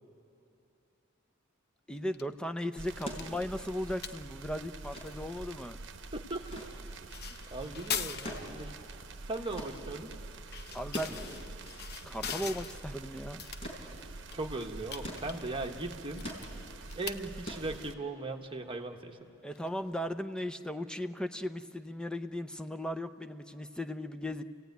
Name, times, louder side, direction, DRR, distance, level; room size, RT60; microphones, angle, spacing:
sound 1, 1.9-20.3, left 8 dB, 50° left, 0.8 m, -45 dB
voice 1, 1.9-5.8 10.7-11.2 12.0-13.4 19.4-24.4, equal, 5° left, 8 dB, 0.6 m, -37 dB
sound 2, 2.8-17.9, right 3 dB, 65° right, 0.9 m, -46 dB
sound 3, 3.1-18.3 19.6-19.7, equal, 30° left, 4.5 m, -46 dB
voice 2, 6.1-6.7 7.5-8.7 9.3-10.1 14.3-16.3 16.9-19.3, right 2 dB, 25° right, 3 dB, 1.3 m, -38 dB
29.5 x 16.5 x 9.3 m, 2.8 s
head